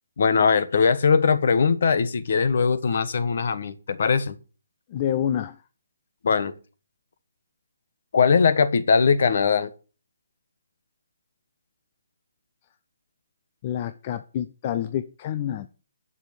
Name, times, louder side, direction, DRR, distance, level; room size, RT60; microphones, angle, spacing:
voice 1, 0.2-4.3 6.2-6.5 8.1-9.7, left 5 dB, 50° left, 1.3 m, -20 dB
voice 2, 4.9-5.6 13.6-15.7, left 10 dB, 25° left, 0.5 m, -28 dB
11.5 x 6.9 x 7.6 m
hypercardioid pair, 175°, 0 cm